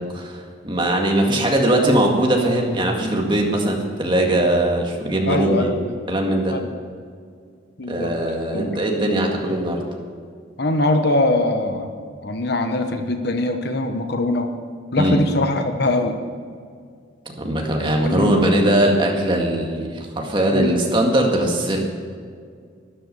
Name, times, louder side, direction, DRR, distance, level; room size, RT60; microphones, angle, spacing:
voice 1, 0.1-5.7 6.1-6.6 7.9-9.8 15.0-15.2 17.4-21.8, right 1 dB, 25° right, 0 dB, 1.9 m, -20 dB
voice 2, 5.2-5.9 6.5-6.7 7.8-8.1 8.5-8.7 10.6-11.9 12.2-14.5 14.9-16.2 18.0-18.6 20.5-20.7, left 2 dB, 50° left, 6 dB, 1.1 m, -22 dB
12.5 x 11.5 x 6.9 m, 2.1 s
head